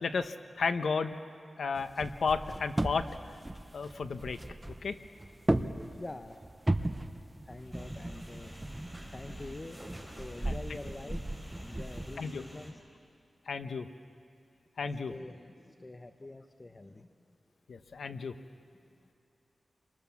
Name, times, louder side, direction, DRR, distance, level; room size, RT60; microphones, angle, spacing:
voice 1, 0.0-1.2 1.6-3.1 3.7-4.4 4.8-5.0 12.2-12.4 13.5-13.9 14.8-15.1 17.7-18.3, left 5 dB, 75° left, 9 dB, 1.1 m, -33 dB
sound 1, 1.8-12.2, right 1 dB, 15° right, 0.8 m, -36 dB
voice 2, 6.0-6.4 7.4-8.5 8.9-9.8 10.1-12.8 14.8-17.1 19.0-19.1, left 2 dB, 25° left, 6 dB, 0.9 m, -46 dB
sound 2, 7.7-12.7, equal, 5° left, 4.1 m, -50 dB
29.0 x 24.0 x 7.2 m, 2.5 s
wide cardioid pair, 155°, 0 cm